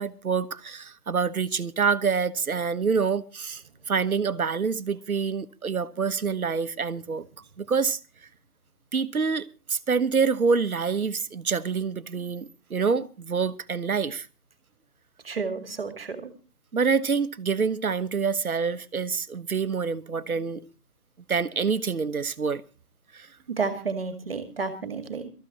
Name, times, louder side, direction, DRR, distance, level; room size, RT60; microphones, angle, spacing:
voice 1, 0.0-7.2 7.6-8.0 8.9-14.3 16.7-20.6 21.3-22.6 23.1-23.3, right 5 dB, 65° right, 1.2 m, -26 dB
voice 2, 15.2-16.3 23.6-25.3, right 4 dB, 40° right, 1.9 m, -31 dB
24.5 x 14.0 x 2.9 m
figure-of-eight pair, 165°, 47 cm